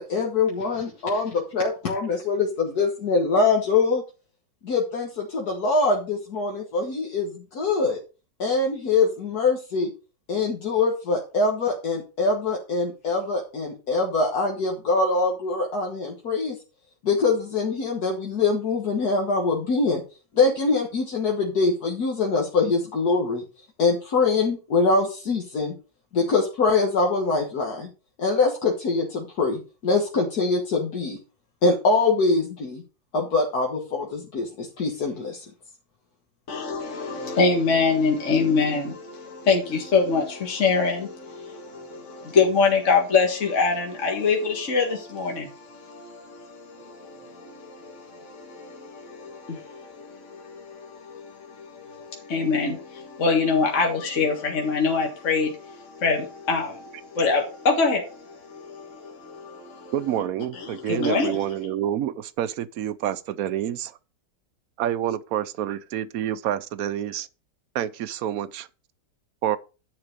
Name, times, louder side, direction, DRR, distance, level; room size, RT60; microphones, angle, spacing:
voice 1, 0.0-4.0 4.6-8.0 8.4-9.9 10.3-16.6 17.0-20.0 20.3-23.4 23.8-25.7 26.1-27.9 28.2-31.2 31.6-32.8 33.1-35.5, left 3 dB, 65° left, 1.9 m, -23 dB
voice 2, 36.5-59.9 60.5-61.4, left 4 dB, 45° left, 2.1 m, -25 dB
voice 3, 59.9-64.0 64.8-67.3 67.7-68.7 69.4-69.6, right 11 dB, 65° right, 1.0 m, -28 dB
10.5 x 4.3 x 6.6 m
omnidirectional pair, 1.8 m